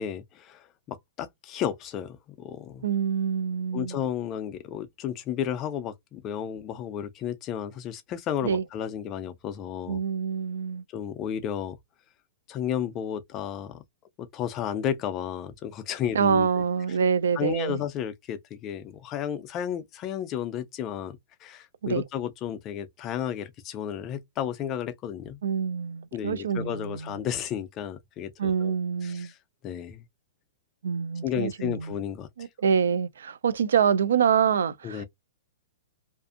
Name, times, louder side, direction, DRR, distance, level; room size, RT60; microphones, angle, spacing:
voice 1, 0.0-2.8 3.7-10.0 10.9-11.8 12.5-13.8 14.2-16.5 17.4-25.4 26.1-28.7 29.0-29.4 29.6-30.0 31.2-32.5 34.8-35.0, left 9 dB, 20° left, 0.3 m, -33 dB
voice 2, 2.8-4.0 8.4-8.6 9.9-10.8 16.1-17.8 21.8-22.0 25.4-27.2 28.4-29.3 30.8-32.0 32.4-35.0, right 7 dB, 90° right, 0.3 m, -26 dB
2.5 x 2.4 x 2.4 m
hypercardioid pair, 170°, 0 cm